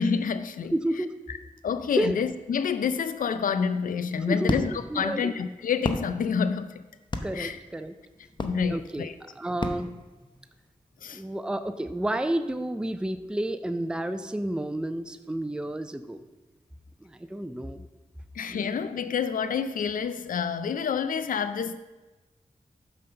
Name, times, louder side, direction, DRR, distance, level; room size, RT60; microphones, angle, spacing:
voice 1, 0.0-0.7 1.3-1.4 1.6-6.8 7.3-7.6 8.4-9.1 11.0-11.2 18.3-21.8, left 6 dB, 75° left, 12 dB, 0.4 m, -28 dB
voice 2, 0.7-1.1 2.0-2.2 4.3-4.6 4.9-5.3 7.2-7.9 8.7-9.1 9.4-9.9 11.1-16.2 17.0-17.9 18.5-18.8, right 1 dB, 5° right, 10 dB, 0.5 m, -30 dB
sound 1, 3.7-10.7, left 2 dB, 35° left, 0.8 m, -35 dB
5.7 x 5.3 x 6.6 m, 1.2 s
cardioid pair, 45°, 14 cm